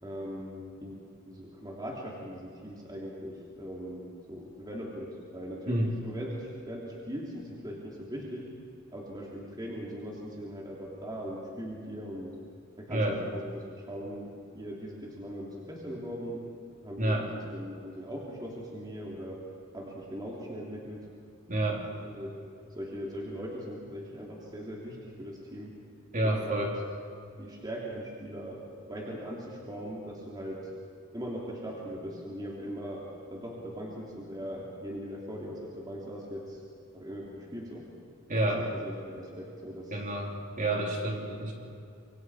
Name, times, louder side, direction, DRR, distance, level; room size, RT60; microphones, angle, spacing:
voice 1, 0.0-1.0 1.3-8.5 8.9-12.4 12.8-16.5 16.8-19.4 19.7-21.0 22.0-22.4 22.7-25.8 26.2-26.7 27.4-30.7 31.1-36.6 36.9-37.9 38.4-40.0 41.3-41.4, equal, 20° right, -3 dB, 2.9 m, -40 dB
voice 2, 21.5-21.8 26.1-26.7 38.3-38.7 39.9-41.5, right 1 dB, 40° right, -1 dB, 3.7 m, -29 dB
26.5 x 23.5 x 4.8 m, 2.5 s
head